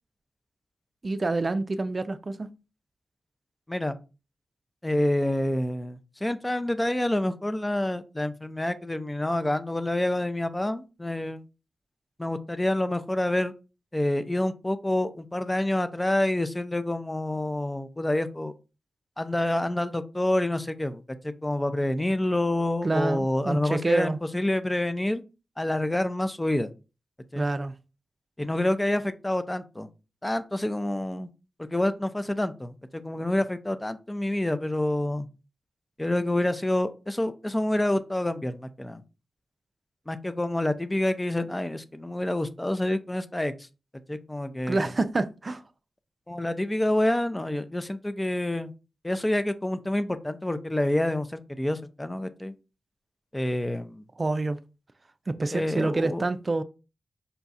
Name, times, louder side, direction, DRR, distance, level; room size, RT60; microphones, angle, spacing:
voice 1, 1.0-2.5 22.8-24.2 27.4-27.7 44.7-45.6 54.2-54.6 55.3-56.6, right 2 dB, 45° right, 0.5 m, -27 dB
voice 2, 4.8-11.4 12.2-13.5 13.9-18.5 19.2-25.2 25.6-26.7 27.3-27.5 28.4-29.9 30.2-31.3 31.6-35.3 36.0-39.0 40.1-43.7 44.1-44.9 46.3-48.7 49.0-52.5 53.3-54.0 55.5-56.2, left 1 dB, 20° left, 0.6 m, -27 dB
5.6 x 2.3 x 4.1 m
supercardioid pair, 40°, 0 cm